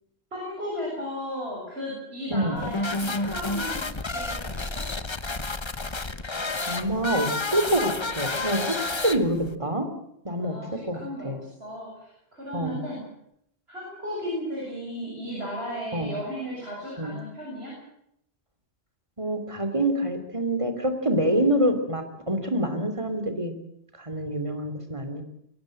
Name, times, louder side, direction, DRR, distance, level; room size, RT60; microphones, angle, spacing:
voice 1, 0.3-4.6 10.4-11.3 11.6-13.1 13.7-17.8, equal, 70° right, -3 dB, 7.3 m, -35 dB
sound 1, 2.5-9.5, left 3 dB, 25° left, 1.1 m, -30 dB
voice 2, 6.7-9.9 10.2-10.6 10.9-11.4 12.5-12.8 15.9-16.1 17.0-17.2 19.2-23.5 24.0-25.2, right 1 dB, 30° right, 7 dB, 3.1 m, -26 dB
23.0 x 17.5 x 7.8 m, 0.74 s
omnidirectional pair, 1.1 m